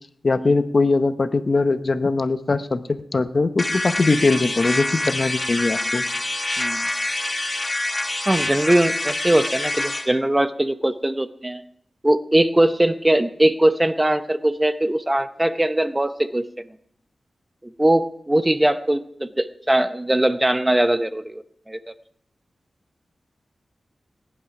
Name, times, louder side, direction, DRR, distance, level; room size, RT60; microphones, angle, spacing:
voice 1, 0.2-6.0, left 3 dB, 45° left, 10 dB, 0.8 m, -21 dB
sound 1, 3.6-10.1, left 2 dB, 25° left, 1.6 m, -26 dB
voice 2, 6.6-6.9 8.3-11.6 12.0-16.5 17.8-21.8, right 1 dB, 15° right, 10 dB, 0.8 m, -20 dB
19.0 x 11.0 x 5.9 m, 0.68 s
wide cardioid pair, 110°, 0 cm